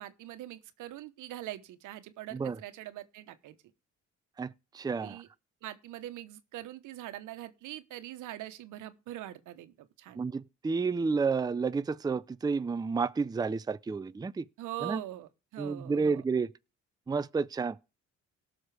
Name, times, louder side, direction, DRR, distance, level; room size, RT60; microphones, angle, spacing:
voice 1, 0.0-3.6 5.0-5.3 5.6-10.2 14.6-16.2, right 14 dB, 90° right, 1.1 m, -43 dB
voice 2, 4.4-5.2 10.2-14.5 14.8-15.0 15.6-16.5 17.1-17.8, right 4 dB, 15° right, 0.4 m, -31 dB
18.0 x 6.4 x 3.4 m
cardioid pair, 90°, 30 cm